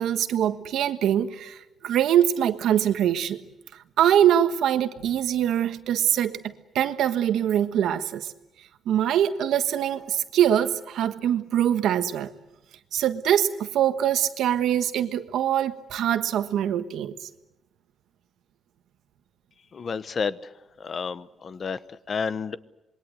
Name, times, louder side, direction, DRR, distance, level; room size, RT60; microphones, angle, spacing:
voice 1, 0.0-3.4 4.0-8.3 8.8-12.3 12.9-17.3, right 10 dB, 80° right, 1.4 m, -23 dB
voice 2, 19.7-20.5 20.8-21.8 22.1-22.6, left 5 dB, 35° left, 0.9 m, -30 dB
27.0 x 22.5 x 8.0 m
cardioid pair, 145°, 0 cm